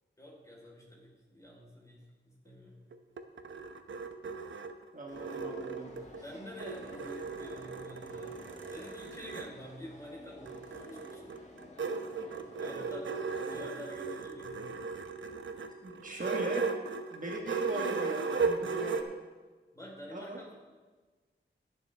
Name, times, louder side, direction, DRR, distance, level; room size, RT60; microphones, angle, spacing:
voice 1, 0.2-2.8 6.0-8.4 8.7-11.2 11.9-12.1 12.3-14.8 19.7-20.5, equal, 15° left, -4 dB, 3.7 m, -48 dB
sound 1, 2.9-6.2 6.6-9.5 10.5-19.0, right 4 dB, 75° right, 0.7 m, -36 dB
voice 2, 4.9-5.9 15.8-16.7 17.1-19.0 20.1-20.4, right 2 dB, 40° right, -1 dB, 1.3 m, -39 dB
sound 2, 5.1-13.6, left 1 dB, 35° left, 1.6 m, -53 dB
20.0 x 7.0 x 3.4 m, 1.4 s
wide cardioid pair, 90°, 20 cm